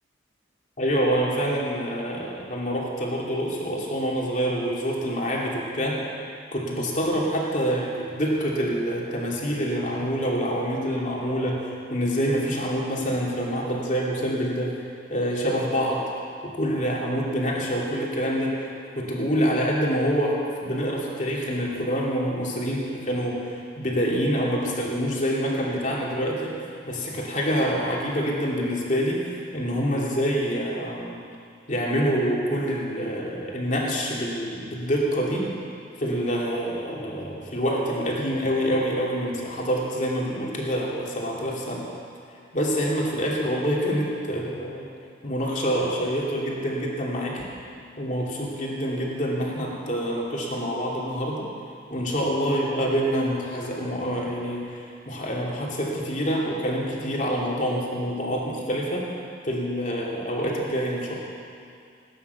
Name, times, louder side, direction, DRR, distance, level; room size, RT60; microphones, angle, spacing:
voice 1, 0.8-6.0 6.5-14.7 15.1-16.0 16.4-18.7 18.9-26.5 26.8-31.1 31.7-35.5 36.0-41.8 42.5-44.8 45.2-47.4 48.0-51.5 51.9-59.1 59.4-61.1, equal, 40° left, -3 dB, 2.7 m, -26 dB
18.5 x 9.6 x 6.8 m, 2.4 s
head